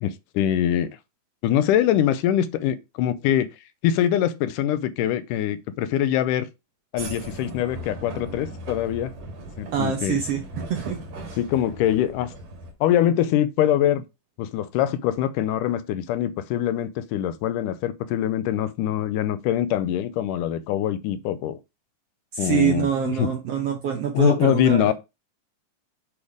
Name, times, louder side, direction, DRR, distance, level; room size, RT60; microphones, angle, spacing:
voice 1, 0.0-0.9 1.4-3.5 3.8-6.5 6.9-9.1 9.6-10.2 11.4-12.3 12.8-14.0 14.4-21.6 22.4-23.3 24.1-24.9, left 11 dB, 80° left, 2.1 m, -23 dB
sound 1, 7.0-12.7, right 1 dB, 50° right, 2.7 m, -38 dB
voice 2, 9.7-10.4 10.7-11.0 22.3-24.9, right 8 dB, 70° right, 1.5 m, -25 dB
8.6 x 3.5 x 4.8 m
omnidirectional pair, 3.8 m